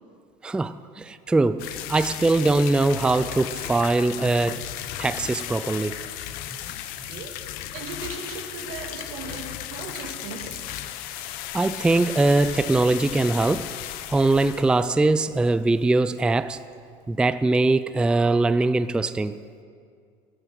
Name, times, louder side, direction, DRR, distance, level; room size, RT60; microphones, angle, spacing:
voice 1, 0.4-4.7 5.0-6.0 7.1-7.2 11.5-13.7 14.1-16.6 17.1-19.4, right 2 dB, 5° right, 0.3 m, -22 dB
sound 1, 1.6-15.9 16.2-16.3 16.5-16.6 17.1-17.2, left 12 dB, 70° left, 1.0 m, -35 dB
voice 2, 7.0-10.7, right 5 dB, 80° right, 2.1 m, -38 dB
15.5 x 12.0 x 6.1 m
cardioid pair, 130°, 15 cm